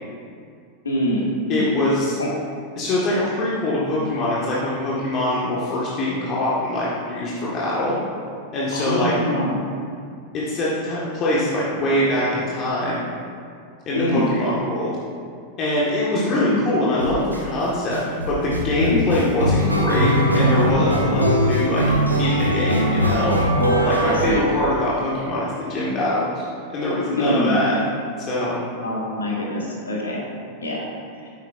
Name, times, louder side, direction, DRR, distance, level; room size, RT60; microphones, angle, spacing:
voice 1, 0.8-1.7 2.2-2.3 8.7-9.6 13.9-14.2 16.4-16.7 18.7-19.1 23.6-24.5 27.2-27.6 28.8-30.3 30.6-30.8, left 1 dB, 70° left, -3 dB, 1.8 m, -24 dB
voice 2, 1.5-2.2 2.8-8.0 8.5-9.1 10.3-13.1 13.8-14.9 15.6-18.0 18.3-21.8 22.2-23.4 23.8-26.4 26.7-27.8 28.2-28.6, left 1 dB, 35° left, -7 dB, 1.7 m, -23 dB
sound 1, 17.0-17.4 17.9-25.1, equal, 85° right, 0.9 m, -21 dB
10.0 x 8.2 x 2.6 m, 2.3 s
figure-of-eight pair, 90°, 0 cm